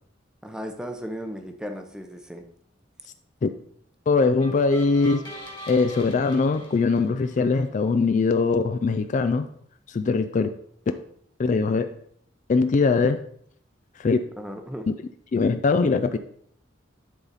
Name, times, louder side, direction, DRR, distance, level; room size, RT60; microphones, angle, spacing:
voice 1, 0.4-2.4 14.4-14.9, equal, 5° right, 5 dB, 0.7 m, -35 dB
voice 2, 4.1-5.2 5.7-9.5 9.9-10.5 11.4-11.9 12.5-13.2 14.0-14.2 15.3-16.2, left 4 dB, 40° left, 10 dB, 0.3 m, -21 dB
sound 1, 4.4-7.6, equal, 20° left, 1.7 m, -42 dB
10.0 x 4.0 x 4.1 m, 0.65 s
head